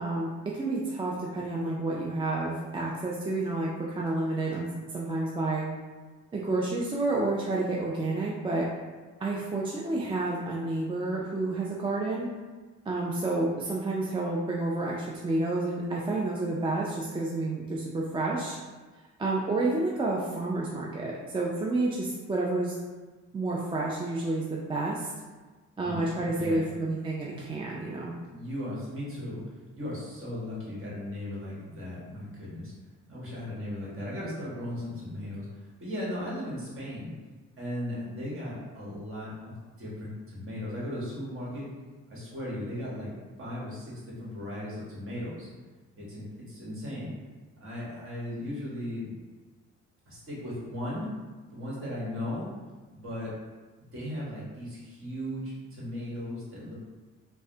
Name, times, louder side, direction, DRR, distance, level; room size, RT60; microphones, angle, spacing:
voice 1, 0.0-5.7 6.3-8.7 9.2-12.3 12.9-18.6 19.2-22.8 23.3-25.1 25.8-28.1, right 2 dB, 20° right, -4 dB, 0.3 m, -30 dB
voice 2, 25.8-26.7 28.3-29.4 29.8-32.7 33.1-37.1 37.6-41.6 42.1-43.1 43.4-45.5 45.9-47.1 47.6-49.1 50.0-51.1 51.5-52.5 52.9-53.3 53.9-56.7, left 1 dB, 45° right, -6 dB, 1.3 m, -37 dB
3.2 x 2.1 x 2.7 m, 1.3 s
cardioid pair, 90°, 30 cm